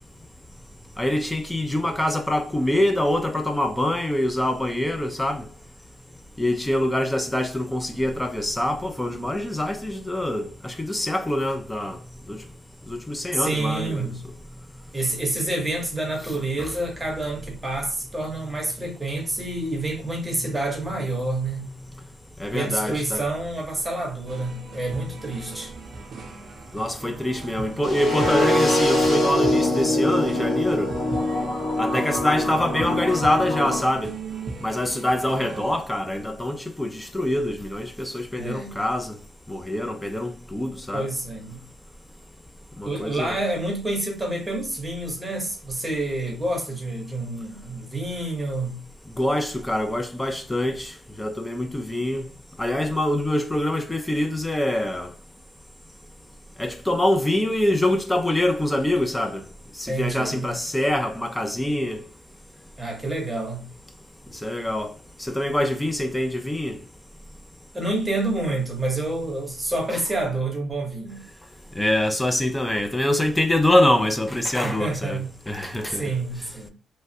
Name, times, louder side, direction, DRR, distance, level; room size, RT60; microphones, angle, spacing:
voice 1, 1.0-5.5 6.4-12.0 12.3-12.4 12.9-14.1 16.6-16.7 22.4-23.3 26.7-30.9 31.8-34.1 34.6-39.2 39.5-41.1 42.8-43.3 49.2-50.9 51.2-52.2 52.6-55.1 56.6-59.4 59.8-62.0 64.4-64.9 65.2-66.8 69.9-70.0 71.8-76.1, left 1 dB, 10° left, 0.4 m, -25 dB
voice 2, 13.3-14.2 14.9-21.7 22.5-25.7 38.4-38.8 40.9-41.6 42.8-48.8 59.9-60.5 62.8-63.7 67.7-71.2 74.6-75.3 75.9-76.7, right 2 dB, 15° right, 1.0 m, -28 dB
sound 1, 24.2-35.8, right 4 dB, 55° right, 0.6 m, -37 dB
sound 2, 27.8-33.8, left 1 dB, 45° left, 1.0 m, -23 dB
3.0 x 2.2 x 2.7 m
cardioid pair, 90°, 0 cm